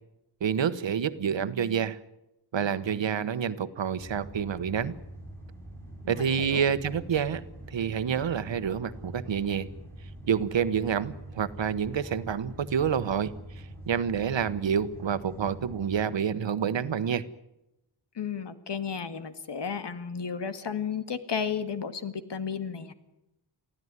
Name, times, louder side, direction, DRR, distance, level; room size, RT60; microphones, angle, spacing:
voice 1, 0.4-2.0 2.5-4.9 6.1-7.4 7.7-9.7 10.3-13.3 13.9-17.2, right 7 dB, 75° right, 13 dB, 1.3 m, -28 dB
sound 1, 4.0-16.0, right 1 dB, 5° left, 7.4 m, -45 dB
voice 2, 6.0-6.6 18.2-22.9, left 6 dB, 65° left, 12 dB, 1.9 m, -33 dB
23.5 x 15.5 x 9.7 m, 0.87 s
wide cardioid pair, 115°, 45 cm